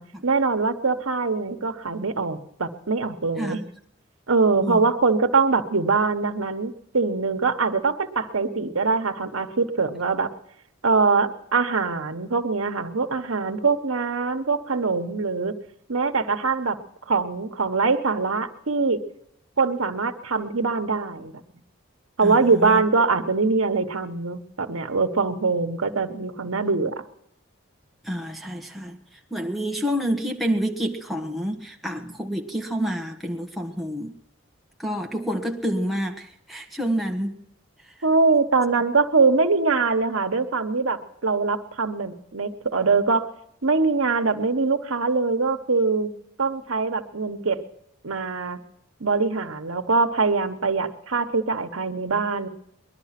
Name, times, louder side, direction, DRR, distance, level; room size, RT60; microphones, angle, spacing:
voice 1, 0.2-3.6 4.3-10.3 10.8-15.5 15.9-16.8 17.1-19.0 19.6-21.4 22.2-27.0 38.0-43.3 43.6-46.1 46.4-47.6 48.0-48.6 49.0-52.5, right 4 dB, 85° right, 8 dB, 1.2 m, -23 dB
voice 2, 3.4-3.7 4.6-4.9 22.2-22.8 25.4-25.5 28.0-34.1 34.8-37.4 37.8-38.0 38.7-38.8, equal, ahead, 1 dB, 1.3 m, -29 dB
20.5 x 12.0 x 5.9 m, 0.75 s
head